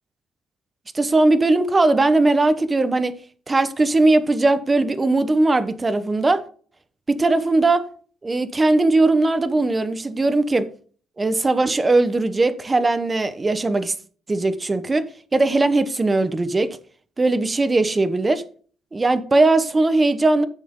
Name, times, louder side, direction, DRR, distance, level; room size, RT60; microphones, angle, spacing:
voice 1, 0.9-3.2 3.5-6.4 7.1-7.9 8.2-10.7 11.2-13.9 14.3-16.8 17.2-18.4 18.9-20.5, right 2 dB, 20° right, 1.0 m, -19 dB
10.5 x 7.5 x 3.8 m
cardioid pair, 135°, 0 cm